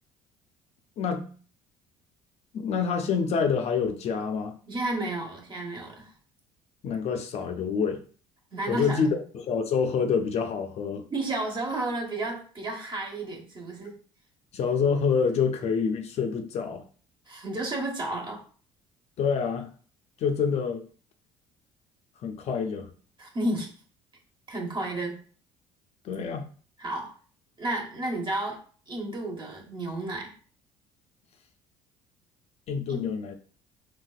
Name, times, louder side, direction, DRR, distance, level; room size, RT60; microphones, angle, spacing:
voice 1, 1.0-1.3 2.5-4.5 6.8-8.0 8.7-11.0 14.5-16.8 19.2-19.7 20.2-20.8 22.2-22.9 26.0-26.5 32.7-33.3, left 6 dB, 55° left, 6 dB, 0.5 m, -27 dB
voice 2, 4.7-6.1 8.5-9.2 11.1-13.9 17.3-18.4 23.2-23.7 24.5-25.2 26.8-27.1 27.6-28.6 28.9-30.3 32.9-33.1, right 2 dB, 35° right, 1 dB, 1.2 m, -32 dB
3.9 x 2.4 x 2.3 m, 0.42 s
supercardioid pair, 75°, 13 cm